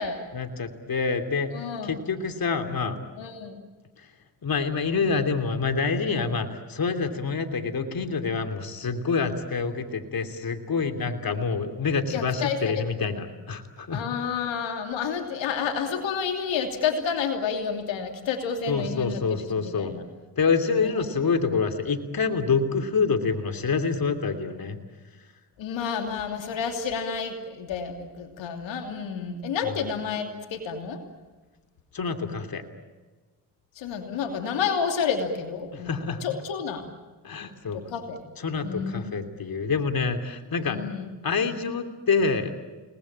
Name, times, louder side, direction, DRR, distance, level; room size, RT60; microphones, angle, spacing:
voice 1, 0.3-1.5 1.8-3.0 4.0-4.1 4.4-14.0 18.7-19.9 20.4-24.8 29.7-29.9 31.9-32.6 35.7-36.2 37.2-37.8 38.4-40.8 41.2-42.5, left 5 dB, 50° left, 7 dB, 3.1 m, -27 dB
voice 2, 1.5-2.0 3.2-3.6 12.1-12.8 13.9-20.0 20.8-21.2 25.6-31.0 33.8-36.9 37.7-38.2 38.6-39.2 40.7-41.1, left 6 dB, 80° left, 5 dB, 3.0 m, -30 dB
30.0 x 20.0 x 8.9 m, 1.3 s
supercardioid pair, 50°, 44 cm